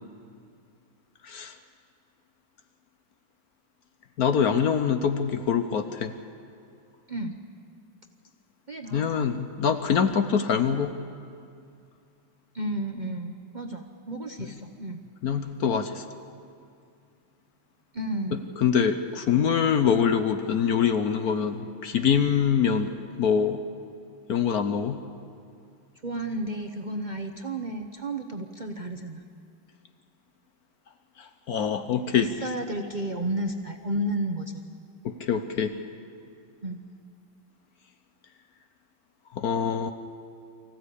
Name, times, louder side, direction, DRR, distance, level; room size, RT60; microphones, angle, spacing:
voice 1, 1.2-1.5 4.2-6.1 8.9-11.0 15.2-16.0 18.6-23.6 24.3-25.0 31.5-32.3 35.0-35.8 39.4-39.9, left 7 dB, 60° left, 9 dB, 1.1 m, -24 dB
voice 2, 8.7-9.1 12.5-15.0 17.9-18.4 26.0-29.2 32.2-34.6 36.6-36.8, right 1 dB, 45° right, 4 dB, 0.5 m, -32 dB
24.5 x 15.5 x 8.4 m, 2.4 s
omnidirectional pair, 2.2 m